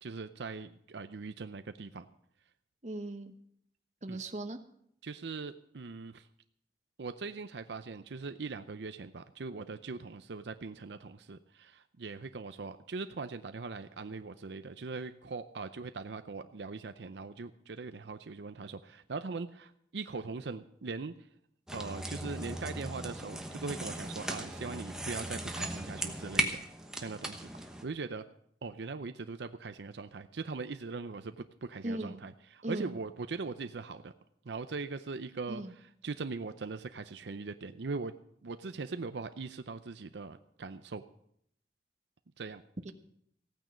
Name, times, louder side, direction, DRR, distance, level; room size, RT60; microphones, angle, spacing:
voice 1, 0.0-2.1 4.1-4.2 5.0-6.3 7.0-21.1 21.7-26.6 27.0-28.3 28.6-34.1 34.5-35.6 36.0-38.1 38.4-41.0 42.4-42.6, right 4 dB, 80° right, 10 dB, 0.6 m, -41 dB
voice 2, 2.8-3.3 4.0-4.6 31.8-32.2 32.6-33.0 35.5-35.7 42.8-42.9, right 1 dB, 40° right, 7 dB, 1.0 m, -38 dB
sound 1, 21.7-27.8, right 1 dB, 5° right, 1.0 m, -37 dB
16.0 x 9.2 x 6.3 m, 0.71 s
head